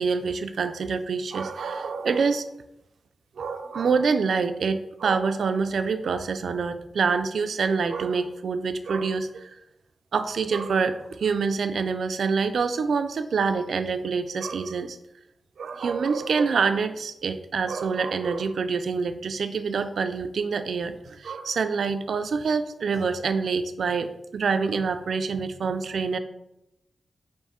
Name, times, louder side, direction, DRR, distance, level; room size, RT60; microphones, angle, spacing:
voice 1, 0.0-2.4 3.4-9.5 10.1-15.0 15.6-26.2, right 5 dB, 80° right, 9 dB, 0.3 m, -26 dB
5.3 x 2.6 x 3.6 m, 0.83 s
wide cardioid pair, 125°, 0 cm